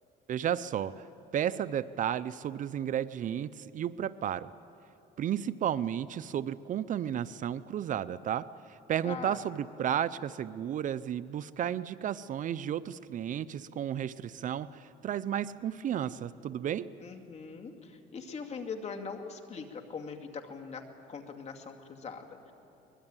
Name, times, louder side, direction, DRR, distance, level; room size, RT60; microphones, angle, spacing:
voice 1, 0.3-1.0 1.3-4.5 5.2-16.9, right 10 dB, 50° right, 16 dB, 0.6 m, -33 dB
voice 2, 9.0-9.4 17.0-22.5, left 5 dB, 40° left, 4 dB, 2.4 m, -42 dB
24.0 x 21.0 x 9.0 m, 2.8 s
cardioid pair, 110°, 17 cm